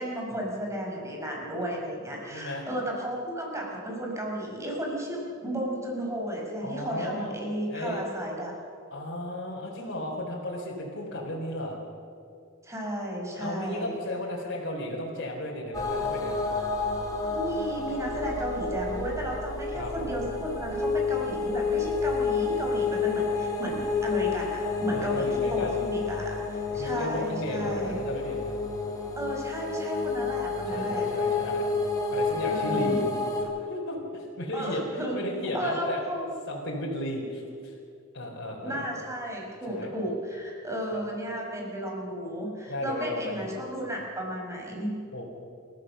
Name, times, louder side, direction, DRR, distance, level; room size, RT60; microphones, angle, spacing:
voice 1, 0.0-8.5 12.6-14.0 17.3-28.0 29.2-31.4 32.4-33.0 34.5-35.2 35.5-36.3 38.6-45.0, right 1 dB, 15° right, -1 dB, 5.1 m, -33 dB
voice 2, 2.3-2.7 6.6-7.3 7.7-8.0 8.9-11.8 13.3-16.4 19.7-19.9 24.9-25.8 26.6-28.4 30.7-31.7 32.1-33.0 33.4-36.0 36.5-37.7 38.1-38.8 39.7-39.9 40.9-41.0 42.7-43.6 45.1-45.2, left 1 dB, 60° left, -4 dB, 4.2 m, -34 dB
sound 1, 15.7-33.4, left 4 dB, 15° left, 3.9 m, -29 dB
28.5 x 14.5 x 6.9 m, 2.4 s
head